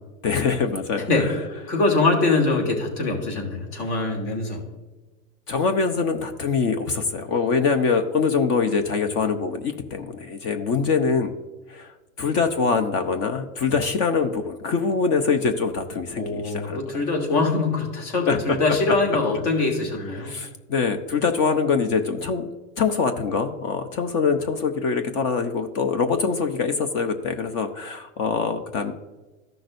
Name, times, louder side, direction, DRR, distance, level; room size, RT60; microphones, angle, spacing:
voice 1, 0.2-1.4 3.8-3.9 5.5-11.3 11.7-17.0 18.3-18.8 20.1-22.5 22.8-28.9, left 5 dB, 35° left, 8 dB, 0.7 m, -24 dB
voice 2, 1.7-4.6 16.2-20.3, left 3 dB, 55° left, 1 dB, 2.9 m, -23 dB
14.5 x 6.0 x 2.6 m, 1.2 s
hypercardioid pair, 130°, 41 cm